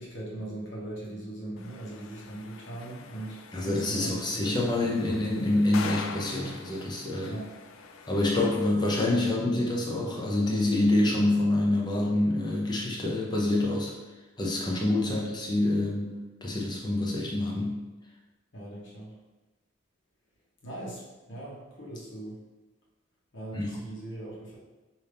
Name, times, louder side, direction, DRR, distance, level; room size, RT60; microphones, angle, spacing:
voice 1, 0.0-4.6 7.3-7.6 15.0-15.2 18.5-19.1 20.6-22.4 23.3-24.6, right 1 dB, 60° left, -5 dB, 1.2 m, -40 dB
sound 1, 1.6-8.7, left 5 dB, 75° left, 0.4 m, -44 dB
voice 2, 3.5-7.3 8.1-13.9 14.4-16.1 16.4-17.7 23.5-23.7, left 1 dB, 20° left, -2 dB, 0.7 m, -26 dB
5.2 x 2.8 x 3.4 m, 1.2 s
head